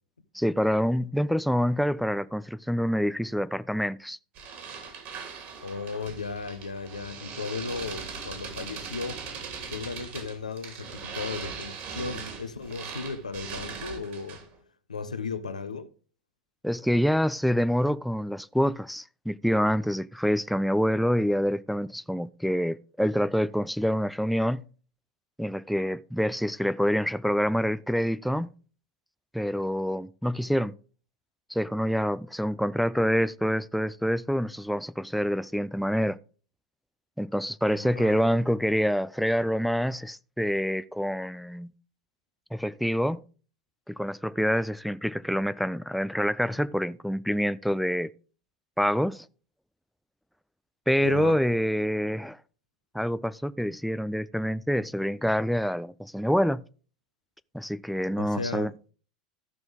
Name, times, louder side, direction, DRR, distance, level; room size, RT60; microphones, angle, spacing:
voice 1, 0.3-4.2 16.6-24.6 25.4-28.5 29.3-30.7 31.5-36.2 37.2-41.7 42.5-43.2 43.9-48.1 48.8-49.3 50.9-52.4 52.9-56.6 57.5-58.7, equal, ahead, 0.4 m, -26 dB
sound 1, 4.4-14.6, right 5 dB, 50° right, 2.8 m, -40 dB
voice 2, 5.6-9.2 9.7-14.4 14.9-15.9 37.7-38.4 51.0-51.4 58.2-58.8, left 4 dB, 90° left, 0.9 m, -35 dB
14.0 x 6.1 x 3.5 m
hypercardioid pair, 90°, 4 cm